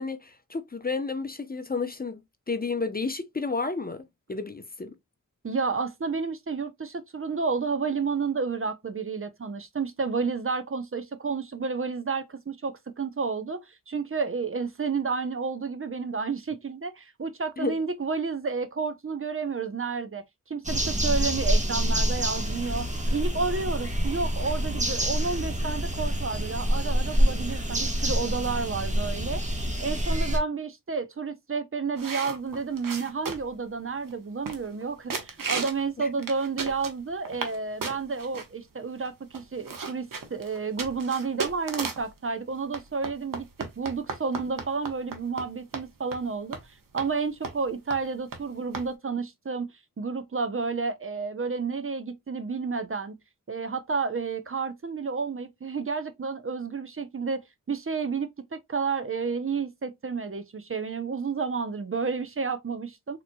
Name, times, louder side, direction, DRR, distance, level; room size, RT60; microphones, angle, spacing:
voice 1, 0.0-2.2 2.5-4.9 17.6-17.7 36.0-36.1, left 4 dB, 25° left, 0.6 m, -31 dB
voice 2, 5.4-29.4 29.8-46.6 46.9-53.2 53.5-57.4 57.7-63.2, right 4 dB, 40° right, 0.7 m, -31 dB
sound 1, 20.6-30.4, equal, 20° right, 1.1 m, -27 dB
sound 2, 32.0-33.6 34.1-34.2 34.5-34.8 35.1-35.8 36.2-37.6 37.8-38.5 39.0-39.1 39.3-42.1 42.7-45.5 45.7-45.9 46.1-46.2 46.5-46.6 47.0-47.1 47.4-47.6 47.9-48.0 48.3-48.4 48.7-48.9, right 5 dB, 70° right, 1.0 m, -34 dB
3.9 x 2.9 x 2.2 m
cardioid pair, 40°, 34 cm